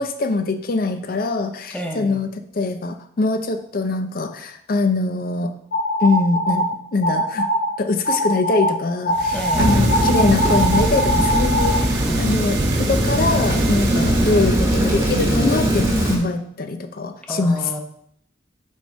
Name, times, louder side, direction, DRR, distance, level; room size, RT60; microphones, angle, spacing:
voice 1, 0.0-2.3 2.5-5.5 6.0-6.7 6.9-7.5 7.8-17.6, left 3 dB, 50° left, 8 dB, 0.5 m, -23 dB
voice 2, 1.7-2.2 9.3-10.0 12.0-12.8 17.3-17.8, equal, 5° left, 2 dB, 0.8 m, -32 dB
sound 1, 5.7-6.7 7.0-7.7 8.0-8.7 9.0-11.8, equal, 75° left, 1.9 m, -21 dB
Crack in spaceship, 9.1-15.0, right 4 dB, 60° right, 0.6 m, -29 dB
Rain, 9.5-16.2, equal, 15° right, 1.2 m, -20 dB
6.4 x 3.4 x 5.3 m, 0.67 s
head